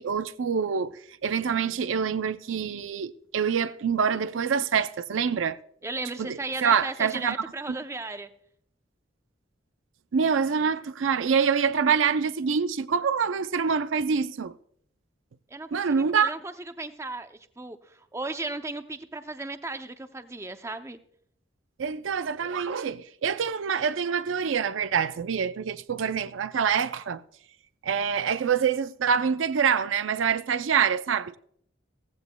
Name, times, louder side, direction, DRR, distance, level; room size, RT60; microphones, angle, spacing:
voice 1, 0.0-5.6 6.2-7.4 10.1-14.5 15.7-16.3 21.8-27.2 27.8-31.4, right 6 dB, 85° right, 0.5 m, -26 dB
voice 2, 5.8-8.3 15.5-21.0, right 2 dB, 15° right, 0.6 m, -36 dB
16.5 x 15.0 x 2.2 m
head